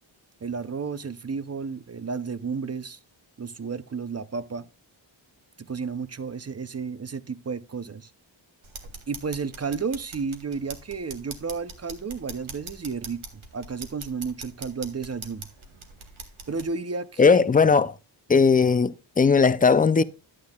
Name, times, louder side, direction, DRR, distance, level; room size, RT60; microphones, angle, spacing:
voice 1, 0.4-3.0 3.4-4.7 5.7-8.1 9.1-15.5 16.5-17.8, right 5 dB, 35° right, 0.5 m, -32 dB
sound 1, 8.6-16.7, right 4 dB, 85° right, 1.3 m, -42 dB
voice 2, 17.2-17.9 18.3-20.0, left 5 dB, 20° left, 0.4 m, -18 dB
11.5 x 8.7 x 2.3 m
wide cardioid pair, 100°, 47 cm